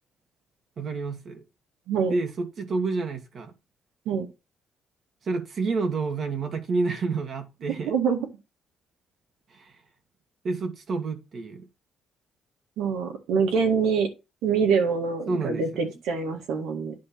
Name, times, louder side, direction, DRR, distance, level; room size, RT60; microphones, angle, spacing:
voice 1, 0.8-1.4 2.1-3.5 5.2-7.9 9.5-9.7 10.4-11.7 15.3-15.9, right 3 dB, 55° right, 1.8 m, -29 dB
voice 2, 7.9-8.3 12.8-14.1 14.4-16.9, right 5 dB, 90° right, 1.9 m, -25 dB
9.5 x 3.2 x 5.9 m
cardioid pair, 90°, 0 cm